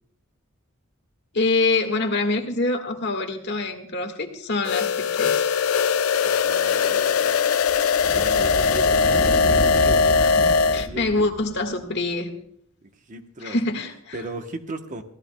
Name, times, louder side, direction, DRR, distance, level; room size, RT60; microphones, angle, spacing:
voice 1, 1.3-5.5 10.3-10.5 10.7-12.3 13.4-14.2, left 3 dB, 55° left, 6 dB, 1.6 m, -25 dB
sound 1, 4.6-10.9, left 5 dB, 85° left, 0.5 m, -20 dB
sound 2, 6.2-11.8, equal, 20° left, 2.7 m, -31 dB
voice 2, 6.2-7.3 8.1-11.3 12.8-13.6 14.1-15.0, right 2 dB, 40° right, 7 dB, 0.9 m, -37 dB
24.0 x 16.0 x 2.2 m, 0.66 s
head